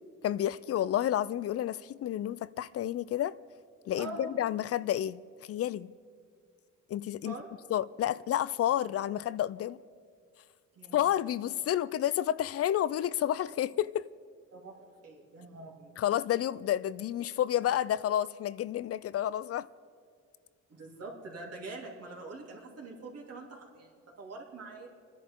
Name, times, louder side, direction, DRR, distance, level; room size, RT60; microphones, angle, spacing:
voice 1, 0.2-3.4 3.9-5.9 6.9-7.3 7.7-9.8 10.9-14.1 16.0-19.7, left 11 dB, 50° left, 0.4 m, -30 dB
voice 2, 3.9-4.3 7.2-7.5 10.8-11.1 14.5-16.0 20.7-24.9, right 3 dB, 55° right, 3.0 m, -44 dB
28.0 x 10.5 x 3.7 m
cardioid pair, 90°, 30 cm